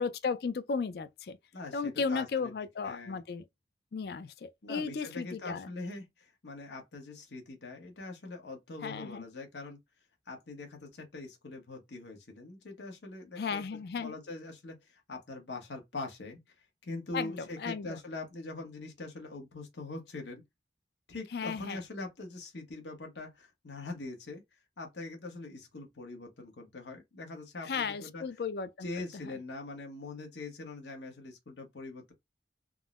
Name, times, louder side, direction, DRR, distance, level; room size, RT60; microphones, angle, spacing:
voice 1, 0.0-1.4 1.7-3.5 3.9-5.7 8.8-9.2 13.4-14.1 17.1-18.0 21.3-21.8 27.7-28.9 29.1-29.3, left 5 dB, 60° left, 0.4 m, -35 dB
voice 2, 1.5-2.5 2.8-3.2 4.6-9.8 10.3-20.4 21.1-28.2 28.8-32.1, left 2 dB, 80° left, 1.0 m, -43 dB
3.6 x 2.0 x 2.3 m
head